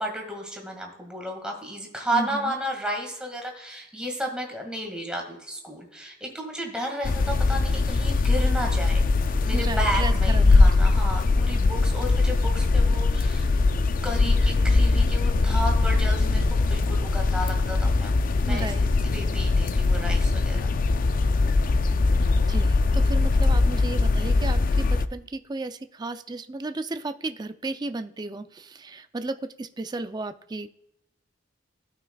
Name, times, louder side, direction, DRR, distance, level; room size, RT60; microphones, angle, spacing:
voice 1, 0.0-9.1 9.4-18.1 18.4-20.7, equal, 5° right, 1 dB, 1.9 m, -33 dB
voice 2, 2.1-2.5 9.5-11.0 18.4-18.8 22.4-30.7, right 2 dB, 20° right, 10 dB, 0.4 m, -34 dB
sound 1, 7.0-25.1, left 3 dB, 45° left, 0.4 m, -21 dB
15.5 x 5.9 x 2.3 m, 0.82 s
head